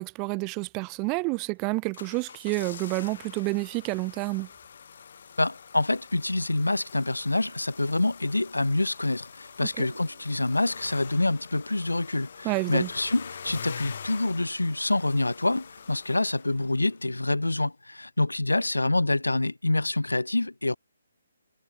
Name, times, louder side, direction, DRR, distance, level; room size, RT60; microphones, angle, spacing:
voice 1, 0.0-4.5 9.6-9.9 12.4-12.9, right 29 dB, 20° right, 0.4 m, -29 dB
sound 1, 1.6-17.1 17.4-17.5, left 7 dB, 50° left, 1.0 m, -45 dB
sound 2, 5.0-17.1, right 3 dB, 70° right, 4.5 m, -62 dB
voice 2, 5.4-20.8, left 2 dB, 80° left, 0.3 m, -26 dB
figure-of-eight pair, 140°, 0 cm